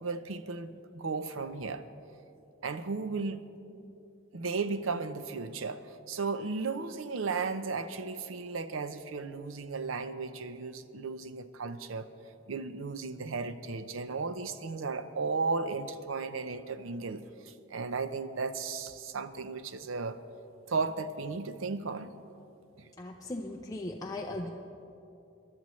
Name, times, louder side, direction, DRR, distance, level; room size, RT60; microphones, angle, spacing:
voice 1, 0.0-1.8 2.6-3.5 4.3-12.1 12.5-20.2 20.7-22.1 22.8-22.9, right 4 dB, 85° right, 12 dB, 0.6 m, -35 dB
voice 2, 23.0-24.5, left 2 dB, 20° left, -1 dB, 0.6 m, -38 dB
23.0 x 12.0 x 3.2 m, 2.8 s
head